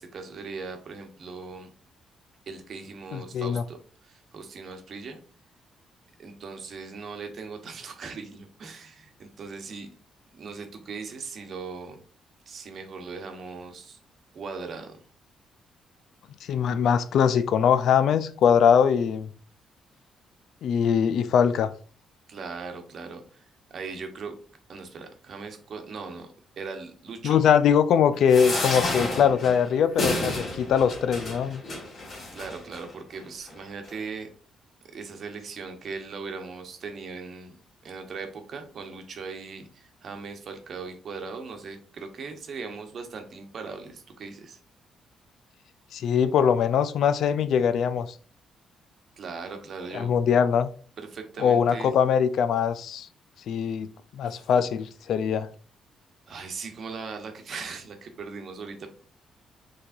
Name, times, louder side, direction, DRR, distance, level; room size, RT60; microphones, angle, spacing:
voice 1, 0.0-1.7 2.5-3.8 4.0-5.2 6.2-9.9 10.3-12.0 12.5-14.0 14.3-15.0 22.3-23.4 23.7-24.3 24.7-26.3 26.6-27.4 28.5-29.0 32.3-34.3 34.9-37.6 37.8-44.6 49.2-50.1 51.0-51.9 54.2-54.4 56.3-58.9, right 4 dB, 55° right, 1.0 m, -39 dB
voice 2, 3.1-3.6 16.5-19.3 20.6-21.7 27.2-31.6 45.9-48.1 49.9-50.7 51.4-53.1 53.5-53.9 54.1-55.5, left 7 dB, 70° left, 0.4 m, -22 dB
sound 1, 28.3-32.8 33.5-33.6 33.8-34.0, left 2 dB, 50° left, 2.2 m, -31 dB
5.7 x 3.3 x 2.6 m
cardioid pair, 90°, 0 cm